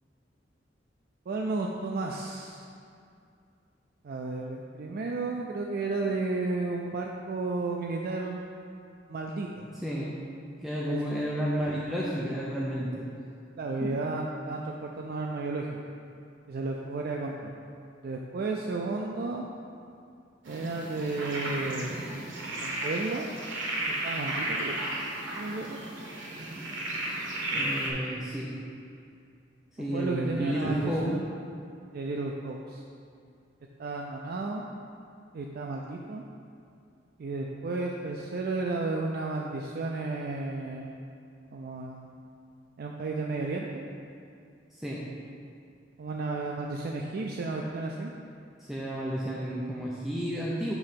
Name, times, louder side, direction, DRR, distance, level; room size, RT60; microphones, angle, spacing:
voice 1, 1.3-2.7 4.0-8.4 9.1-9.7 10.8-11.0 13.6-15.8 16.5-17.5 18.0-19.5 20.5-22.2 22.6-23.3 24.0-24.7 25.4-25.8 29.8-31.3 31.9-32.8 33.8-34.6 35.3-36.2 37.2-41.0 41.5-42.1 42.8-43.8 46.0-48.1, right 3 dB, 55° right, 0 dB, 0.4 m, -33 dB
voice 2, 9.8-10.1 10.6-13.0 13.8-14.0 27.5-28.5 29.8-31.1 44.7-45.0 48.7-50.7, equal, ahead, -6 dB, 0.5 m, -31 dB
sound 1, 20.4-27.9, right 1 dB, 90° right, 1.2 m, -34 dB
7.0 x 3.2 x 5.7 m, 2.4 s
head